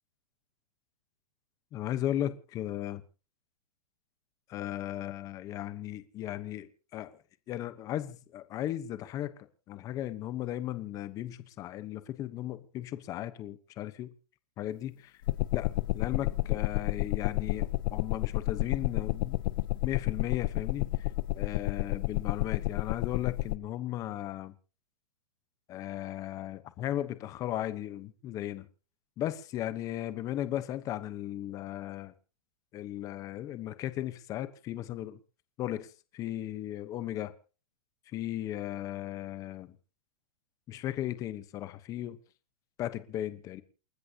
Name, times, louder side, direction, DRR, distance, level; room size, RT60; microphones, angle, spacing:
voice 1, 1.7-3.0 4.5-7.1 7.5-14.1 14.6-15.1 15.5-15.7 15.9-19.4 19.8-21.1 21.4-24.5 25.7-28.7 29.2-32.1 32.7-35.2 35.6-35.9 36.1-37.3 38.1-39.8 40.7-42.2 42.8-43.6, left 12 dB, 20° left, 1.0 m, -36 dB
sound 1, 15.3-23.6, left 17 dB, 35° left, 0.6 m, -31 dB
29.0 x 13.0 x 2.9 m
hypercardioid pair, 170°, 19 cm